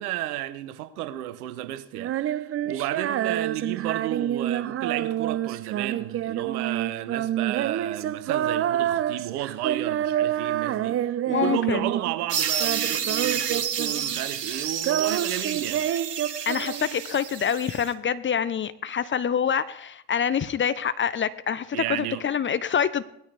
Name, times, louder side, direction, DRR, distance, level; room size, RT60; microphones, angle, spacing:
voice 1, 0.0-15.8 21.7-22.2, right 13 dB, 70° right, 1.2 m, -33 dB
Female singing, 1.9-12.3 12.5-14.2 14.5-17.1, right 11 dB, 30° right, 0.6 m, -28 dB
voice 2, 11.3-11.9 16.5-23.0, left 8 dB, 25° left, 0.8 m, -26 dB
sound 1, 12.3-17.9, right 8 dB, 85° right, 1.1 m, -30 dB
18.0 x 13.5 x 3.5 m
figure-of-eight pair, 70°, 47 cm